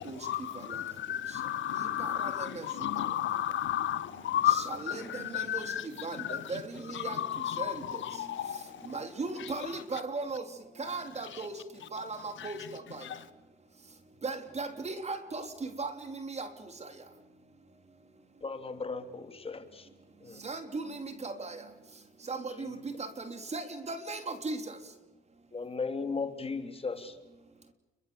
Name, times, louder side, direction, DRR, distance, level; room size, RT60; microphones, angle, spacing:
voice 1, 0.0-9.0 9.3-10.0 11.2-11.5 11.8-11.9 12.4-13.3, left 12 dB, 70° left, 1.5 m, -34 dB
voice 2, 2.0-2.6 4.9-5.7 6.0-6.6 7.0-7.2 7.6-7.7 8.9-10.4 10.8-11.5 11.9-13.0 14.2-16.5 20.4-21.6 22.3-24.6, right 3 dB, 35° right, 3.5 m, -37 dB
voice 3, 18.4-19.9 20.2-20.4 22.6-22.7 25.5-27.1, left 4 dB, 30° left, 3.1 m, -36 dB
29.5 x 23.0 x 7.2 m
cardioid pair, 90°, 20 cm